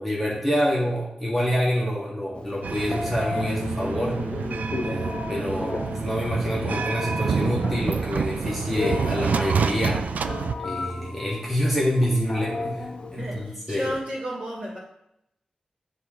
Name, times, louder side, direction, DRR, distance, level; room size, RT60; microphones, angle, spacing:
voice 1, 0.0-4.2 4.8-10.0 10.6-12.9 13.1-13.9, equal, ahead, -6 dB, 1.5 m, -27 dB
Telephone, 2.3-13.5, left 3 dB, 45° left, 0.9 m, -35 dB
sound 1, 2.6-10.5, right 6 dB, 80° right, 0.3 m, -28 dB
sound 2, 3.3-8.4, left 1 dB, 25° left, 1.3 m, -37 dB
voice 2, 13.2-14.8, equal, 45° right, -6 dB, 2.7 m, -32 dB
9.5 x 3.6 x 3.8 m, 0.80 s
wide cardioid pair, 130°, 3 cm